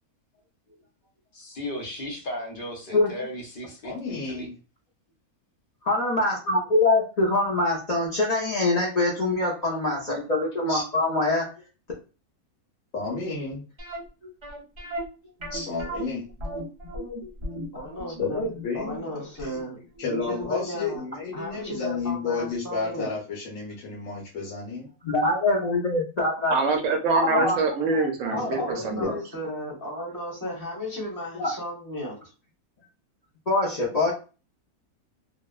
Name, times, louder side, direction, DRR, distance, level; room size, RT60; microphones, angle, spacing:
voice 1, 1.3-4.5, left 1 dB, 50° left, 0.7 m, -36 dB
voice 2, 3.8-4.5 10.7-10.8 12.9-13.6 15.5-16.2 18.2-19.3 20.0-24.9 28.3-29.2, left 4 dB, 65° left, 1.1 m, -31 dB
voice 3, 5.8-11.5 25.0-26.5 27.1-27.6 28.3-28.6 31.3-31.5 33.5-34.1, left 2 dB, 85° left, 0.3 m, -24 dB
sound 1, 13.8-20.6 20.9-21.0 21.6-21.7 22.0-22.1, equal, 40° right, 0.4 m, -37 dB
voice 4, 17.7-18.4 18.7-19.8 20.1-21.0 21.3-23.1 27.3-27.4 28.5-32.2, equal, 15° left, 0.9 m, -35 dB
voice 5, 26.5-29.2, right 3 dB, 70° right, 0.9 m, -25 dB
2.8 x 2.0 x 2.3 m
omnidirectional pair, 1.5 m